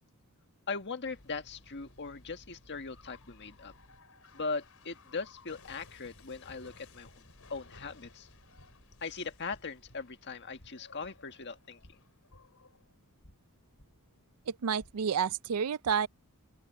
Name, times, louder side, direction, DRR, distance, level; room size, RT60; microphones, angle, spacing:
voice 1, 0.7-3.7 4.3-7.2 7.5-8.3 9.0-12.0, left 4 dB, 50° left, 1.6 m, -40 dB
sound 1, 1.0-15.2, left 2 dB, 70° left, 5.5 m, -58 dB
voice 2, 14.5-16.1, right 7 dB, 85° right, 0.5 m, -30 dB
open air
head